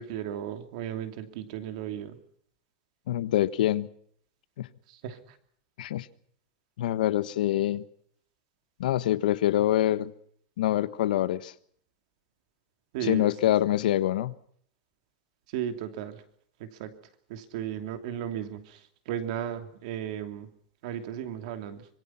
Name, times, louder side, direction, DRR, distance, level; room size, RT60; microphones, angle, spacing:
voice 1, 0.0-2.2 4.9-5.4 12.9-13.5 15.5-16.2 16.6-16.9 17.3-20.5 20.8-21.9, right 10 dB, 50° right, 8 dB, 2.9 m, -35 dB
voice 2, 3.1-3.9 4.6-4.7 5.8-6.1 6.8-7.8 8.8-10.1 10.6-11.5 13.0-14.3, left 13 dB, 80° left, 15 dB, 1.3 m, -25 dB
25.0 x 23.0 x 5.8 m, 0.63 s
supercardioid pair, 175°, 4 cm